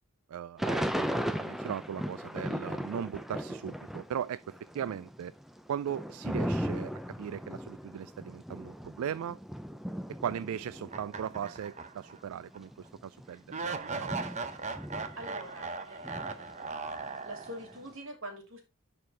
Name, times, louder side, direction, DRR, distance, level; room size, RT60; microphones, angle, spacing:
voice 1, 0.3-5.3 5.7-6.9 7.2-9.4 10.2-14.3, right 9 dB, 75° right, 0.3 m, -38 dB
Thunder / Rain, 0.6-4.2 4.5-11.6 12.2-12.3 12.5-15.7 16.0-17.8, equal, ahead, 0.4 m, -37 dB
sound 1, 10.9-12.2 12.5-12.6 13.5-17.8, right 4 dB, 30° right, 0.7 m, -38 dB
voice 2, 15.2-16.7 17.2-18.6, right 1 dB, 60° right, 2.6 m, -45 dB
11.0 x 4.3 x 3.3 m
head